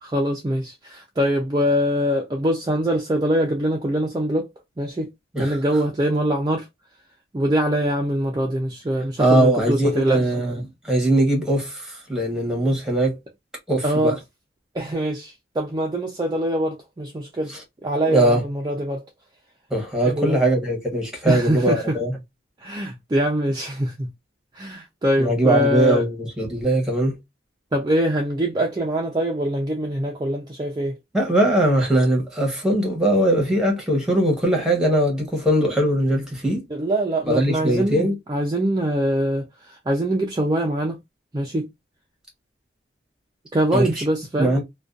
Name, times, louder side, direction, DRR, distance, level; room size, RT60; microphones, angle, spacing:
voice 1, 0.0-4.5 4.8-5.1 5.4-6.7 7.3-10.2 13.8-14.2 14.7-17.5 17.8-19.0 20.1-20.4 21.3-22.0 22.6-24.1 24.5-26.0 27.7-31.0 36.7-41.0 41.3-41.7 43.5-44.6, equal, 20° right, 0.3 m, -23 dB
voice 2, 9.2-10.5 10.8-13.2 13.7-14.2 18.1-18.4 19.7-22.1 25.2-27.2 31.1-36.6 37.3-38.1 43.7-44.0 44.4-44.6, right 1 dB, 5° right, 0.9 m, -20 dB
2.5 x 2.2 x 2.3 m
head